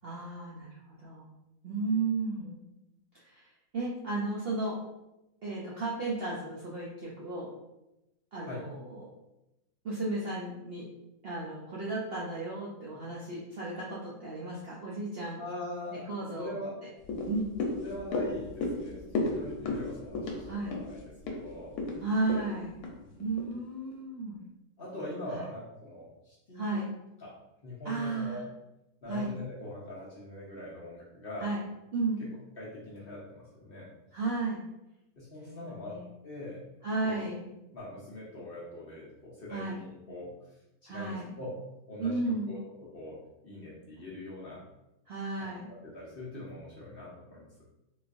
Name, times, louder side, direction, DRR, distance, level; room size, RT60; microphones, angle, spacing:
voice 1, 0.0-1.3 1.6-2.6 3.2-3.5 3.7-4.8 5.4-7.5 8.3-9.1 9.8-10.9 11.2-15.4 16.1-16.5 17.3-17.6 20.5-20.8 22.0-22.8 23.2-24.4 25.3-25.4 26.5-26.9 27.8-28.4 29.1-29.3 31.4-31.6 31.9-32.2 34.1-34.6 35.6-36.0 36.8-37.5 39.5-39.8 40.9-41.3 42.0-42.6 45.1-45.7, right 3 dB, 65° right, -5 dB, 0.6 m, -34 dB
voice 2, 15.4-16.1 16.4-16.7 17.8-21.7 22.3-22.5 23.0-23.4 24.8-26.8 27.2-27.4 27.6-28.4 29.0-31.5 32.2-33.9 35.2-36.0 36.2-36.6 37.0-37.3 37.7-41.5 41.9-44.6 45.4-45.5 45.8-47.5, left 1 dB, 50° left, -6 dB, 0.7 m, -42 dB
sound 1, 17.0-23.5 23.9-24.0, left 2 dB, 90° left, 1.1 m, -35 dB
3.8 x 2.4 x 2.4 m, 0.93 s
omnidirectional pair, 1.6 m